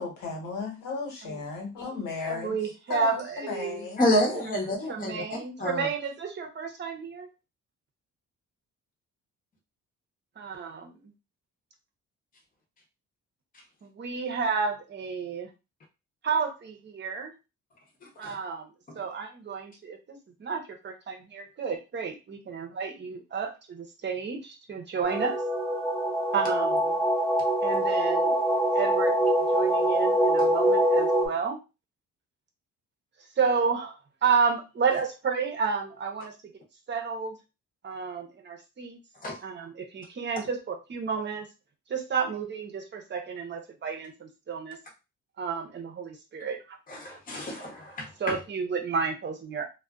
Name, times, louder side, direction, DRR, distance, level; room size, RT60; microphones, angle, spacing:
voice 1, 0.0-2.5 2.9-4.1, left 4 dB, 80° left, 1 dB, 1.2 m, -35 dB
voice 2, 2.3-4.2 4.9-7.3 10.4-11.1 13.8-15.5 16.2-17.3 18.2-25.4 26.3-26.9 27.6-28.3 28.7-31.6 33.4-36.3 36.9-37.4 37.8-39.0 39.4-41.5 41.9-44.8 45.4-46.8 48.2-49.7, right 5 dB, 35° right, 3 dB, 0.8 m, -31 dB
voice 3, 4.0-5.9 18.2-18.4 18.9-19.0 30.4-30.5 39.2-39.4 46.9-48.4, left 1 dB, 30° left, 0 dB, 0.9 m, -29 dB
sound 1, 25.0-31.3, right 1 dB, 5° left, 1.0 m, -24 dB
2.4 x 2.3 x 2.3 m, 0.27 s
cardioid pair, 90°, 30 cm